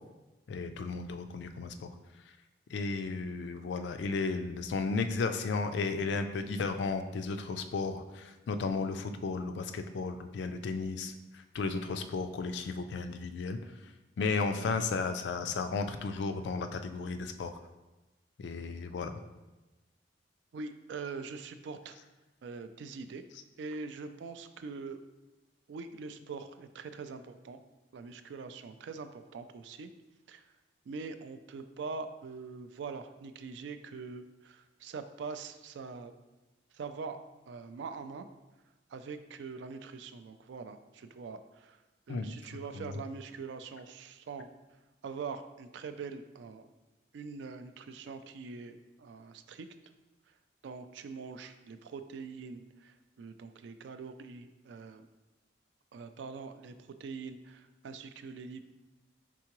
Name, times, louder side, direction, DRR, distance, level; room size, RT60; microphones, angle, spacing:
voice 1, 0.5-1.9 2.2-2.3 2.7-17.5 18.4-19.1 42.1-43.0, left 4 dB, 70° left, 8 dB, 0.3 m, -34 dB
voice 2, 20.5-22.0 22.4-23.2 23.6-25.0 25.7-27.6 27.9-29.9 30.3-30.4 30.9-36.1 36.7-37.2 37.5-38.3 38.9-41.8 42.1-44.5 45.0-46.7 47.1-49.7 50.6-55.1 55.9-58.6, right 4 dB, 75° right, 10 dB, 0.3 m, -43 dB
4.7 x 3.6 x 3.0 m, 1.1 s
head